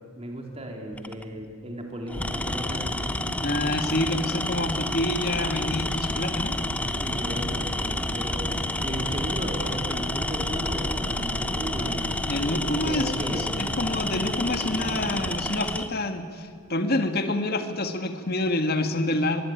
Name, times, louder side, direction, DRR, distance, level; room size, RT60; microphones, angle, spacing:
voice 1, 0.1-3.0 7.0-8.5 8.8-12.1 12.7-13.5, equal, 25° right, 2 dB, 3.2 m, -35 dB
Tools, 0.9-1.2 2.1-15.9, left 1 dB, 5° left, 0.8 m, -30 dB
sound 1, 2.1-15.4, equal, 25° left, 2.9 m, -35 dB
voice 2, 3.4-6.5 12.3-19.4, left 1 dB, 45° left, 7 dB, 1.9 m, -27 dB
24.5 x 22.0 x 9.3 m, 2.2 s
head